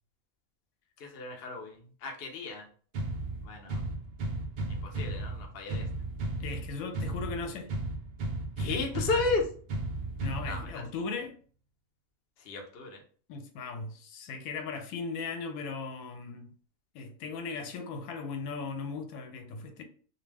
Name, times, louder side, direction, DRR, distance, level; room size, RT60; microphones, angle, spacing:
voice 1, 1.0-2.6 3.4-3.8 4.8-5.8 8.6-9.4 10.4-10.7 12.5-13.0, left 4 dB, 60° left, 0.7 m, -33 dB
sound 1, 2.9-10.9, right 2 dB, 65° right, 0.4 m, -35 dB
voice 2, 6.4-7.7 10.2-11.3 13.3-16.5 16.9-19.8, left 4 dB, 85° left, 1.0 m, -38 dB
2.4 x 2.2 x 3.2 m
omnidirectional pair, 1.4 m